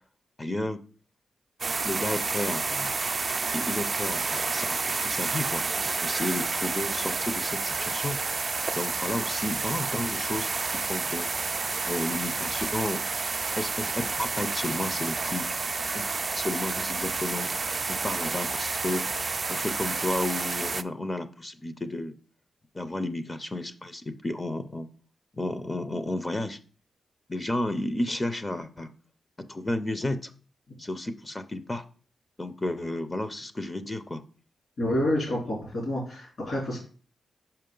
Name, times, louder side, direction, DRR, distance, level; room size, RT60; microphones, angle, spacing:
voice 1, 0.4-0.8 1.8-2.9 3.5-8.2 8.7-11.3 11.8-13.1 13.6-15.5 15.9-17.5 17.9-19.1 19.5-22.2 22.7-24.9 25.3-26.6 27.3-28.9 29.4-30.3 30.8-31.8 32.4-34.2, left 1 dB, 25° left, 11 dB, 0.6 m, -32 dB
sound 1, 1.6-20.8, right 4 dB, 40° right, 0.3 m, -30 dB
voice 2, 34.8-36.8, left 1 dB, 60° left, -3 dB, 3.4 m, -28 dB
5.6 x 5.1 x 3.8 m, 0.40 s
cardioid pair, 75°, 0 cm